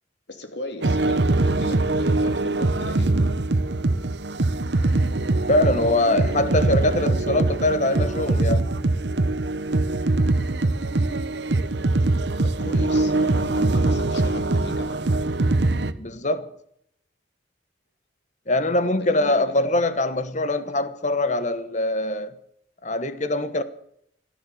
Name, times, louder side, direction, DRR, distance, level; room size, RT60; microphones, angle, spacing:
voice 1, 0.3-3.3 6.0-7.5 12.4-15.1 18.8-19.7, left 2 dB, 70° left, 2.7 m, -38 dB
sound 1, 0.8-15.9, right 2 dB, 65° right, 0.9 m, -22 dB
voice 2, 5.5-8.7 16.0-16.5 18.5-22.3 22.8-23.6, left 2 dB, 40° left, 1.2 m, -23 dB
15.0 x 12.5 x 7.1 m
head